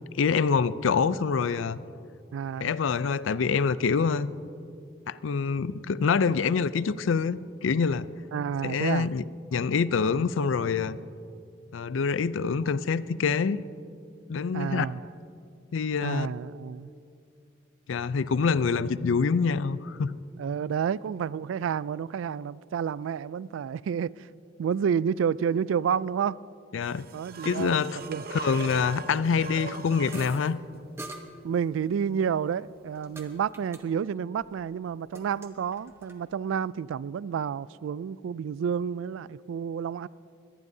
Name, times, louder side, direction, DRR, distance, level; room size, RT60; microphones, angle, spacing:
voice 1, 0.1-1.8 2.6-4.3 5.1-8.1 8.6-9.2 9.5-11.0 11.7-13.6 14.3-14.9 15.7-16.3 17.9-20.1 26.7-27.1 27.4-28.0 28.3-30.6, left 5 dB, 80° left, 0.4 m, -26 dB
voice 2, 2.3-2.7 8.3-9.1 14.5-15.1 16.0-16.9 20.4-24.3 24.6-26.4 27.1-28.2 31.4-40.1, right 7 dB, 85° right, 0.3 m, -30 dB
sound 1, 26.8-30.4 33.3-33.4, right 4 dB, 50° right, 0.7 m, -40 dB
sound 2, 30.1-30.5 31.0-31.2 32.2-33.3 33.5-33.8 34.1-34.6 34.9-36.2, right 2 dB, 15° right, 1.0 m, -44 dB
22.5 x 18.0 x 2.7 m
head